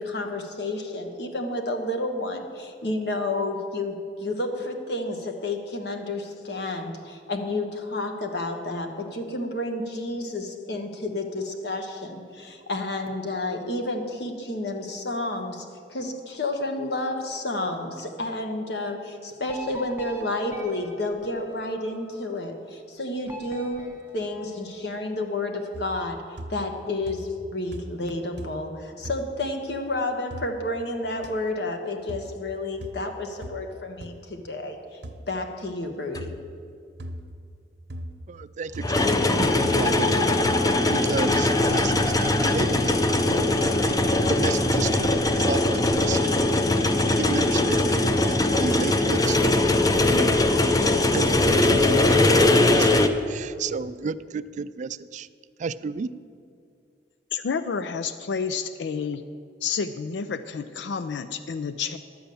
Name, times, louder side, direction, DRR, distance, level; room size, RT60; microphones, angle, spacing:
voice 1, 0.0-15.6 15.9-23.9 24.1-35.0 35.3-36.3, left 2 dB, 65° left, 4 dB, 1.2 m, -30 dB
sound 1, 19.5-22.2 23.3-25.0, right 1 dB, 10° right, 0.9 m, -43 dB
sound 2, 25.7-26.1 26.4-26.8 27.1-27.5 27.7-28.1 28.4-28.7 29.0-29.2 30.3-30.5 31.2-31.3 32.1-32.3 32.8-33.0 33.4-33.6 34.0-34.1 35.0-35.2 36.1-36.4 37.0-37.3 37.9-38.2 38.7-39.0 39.6-39.9 40.4-40.7 41.3-41.6, right 1 dB, 90° right, 0.9 m, -38 dB
sound 3, 36.1-36.2 38.8-53.1, left 2 dB, 20° left, 0.5 m, -21 dB
voice 2, 38.3-40.1 40.9-43.0 43.9-44.0 44.3-46.3 46.7-49.5 50.1-50.3 51.1-52.9 53.3-55.3 55.6-56.1, right 5 dB, 45° right, 15 dB, 0.3 m, -32 dB
voice 3, 57.3-59.2 59.6-62.0, left 6 dB, 85° left, 12 dB, 0.4 m, -30 dB
11.0 x 7.9 x 6.9 m, 2.3 s
head